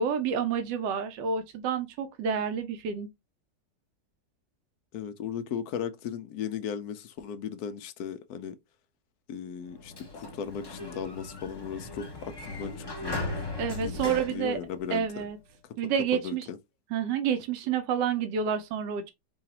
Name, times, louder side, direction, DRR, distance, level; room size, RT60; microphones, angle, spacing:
voice 1, 0.0-3.1 13.6-14.6 14.9-15.4 15.8-16.5 16.9-19.1, right 7 dB, 85° right, 1.3 m, -29 dB
voice 2, 4.9-8.6 9.3-13.5 13.8-15.2 15.6-15.7 16.1-16.6, left 8 dB, 70° left, 1.0 m, -37 dB
Sliding door, 9.7-15.3, left 2 dB, 20° left, 0.7 m, -38 dB
4.9 x 2.3 x 2.8 m
omnidirectional pair, 1.9 m